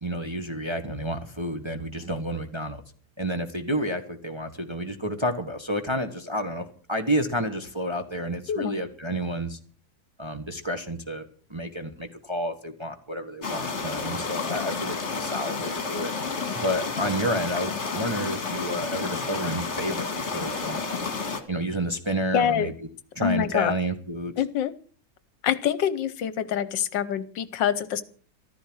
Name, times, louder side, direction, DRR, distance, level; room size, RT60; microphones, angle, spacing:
voice 1, 0.0-2.8 3.2-9.6 10.2-11.2 11.5-16.1 16.5-20.8 21.5-22.7 23.1-24.3, equal, 15° right, 4 dB, 1.2 m, -30 dB
sound 1, 13.4-21.4, left 4 dB, 35° left, 2.1 m, -31 dB
voice 2, 22.3-22.7 23.2-23.7 24.4-24.7 25.4-28.0, left 9 dB, 70° left, 15 dB, 1.5 m, -25 dB
14.5 x 13.0 x 6.3 m, 0.44 s
omnidirectional pair, 2.1 m